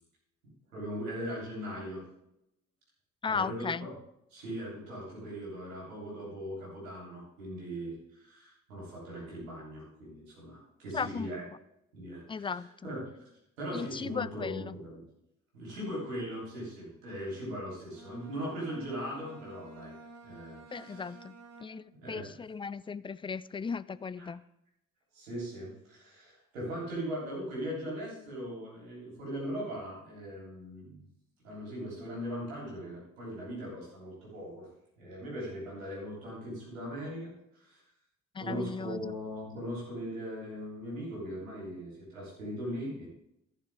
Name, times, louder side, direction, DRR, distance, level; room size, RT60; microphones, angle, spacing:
voice 1, 0.7-2.0 3.3-3.9 4.3-11.4 11.9-12.5 12.8-13.0 13.6-15.0 15.5-19.9 20.2-21.0 22.0-22.3 24.2-24.3 25.1-31.0 31.4-34.7 35.0-37.8 38.4-43.1, equal, 85° right, 3.3 m, -39 dB
voice 2, 3.2-3.9 10.9-11.3 12.3-12.9 13.7-14.8 20.7-24.4 38.3-39.1, left 5 dB, 15° left, 0.3 m, -36 dB
Bowed string instrument, 17.8-22.1, right 2 dB, 40° right, 1.6 m, -51 dB
14.0 x 6.7 x 3.5 m
figure-of-eight pair, 40°, 39 cm